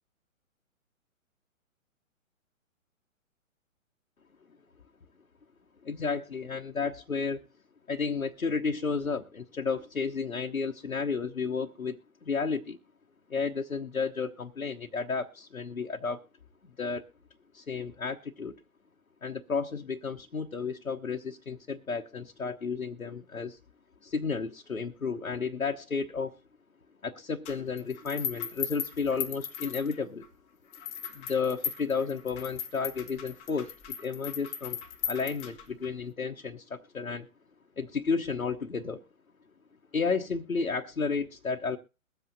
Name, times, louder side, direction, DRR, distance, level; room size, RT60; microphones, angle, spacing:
voice 1, 5.8-7.4 7.9-12.0 12.3-12.8 13.3-16.2 16.8-17.0 17.5-18.5 19.2-23.6 24.0-26.3 27.0-30.3 31.1-33.7 34.0-34.8 35.1-37.3 37.8-39.0 39.9-41.8, left 5 dB, 85° left, 1 dB, 1.0 m, -32 dB
sound 1, 27.4-30.3 30.7-35.9, left 8 dB, 15° left, 1.0 m, -38 dB
22.5 x 8.0 x 2.7 m, 0.31 s
figure-of-eight pair, 125°, 41 cm